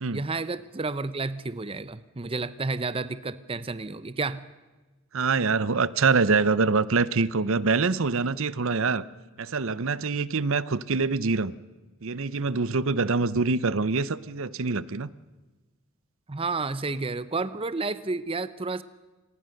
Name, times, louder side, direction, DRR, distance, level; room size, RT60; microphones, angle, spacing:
voice 1, 0.1-4.4 16.3-18.8, right 3 dB, 25° right, 15 dB, 0.7 m, -31 dB
voice 2, 5.1-9.0 9.4-11.5 12.0-15.1, right 4 dB, 60° right, 18 dB, 0.7 m, -25 dB
26.0 x 20.5 x 6.5 m, 1.2 s
head